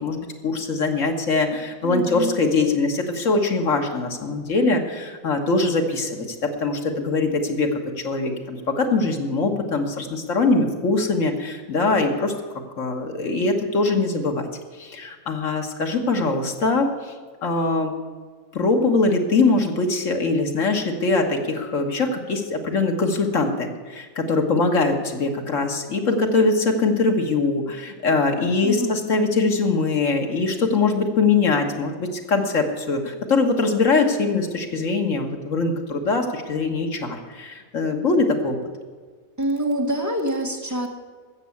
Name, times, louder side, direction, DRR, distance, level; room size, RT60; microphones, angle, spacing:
voice 1, 0.0-7.8 8.0-12.3 12.8-14.5 14.8-17.1 17.4-17.9 18.5-38.6, left 3 dB, 70° left, 3 dB, 1.9 m, -22 dB
voice 2, 1.8-2.4 28.6-29.1 39.4-40.9, equal, 15° right, 1 dB, 1.7 m, -26 dB
13.5 x 7.5 x 8.4 m, 1.5 s
omnidirectional pair, 1.4 m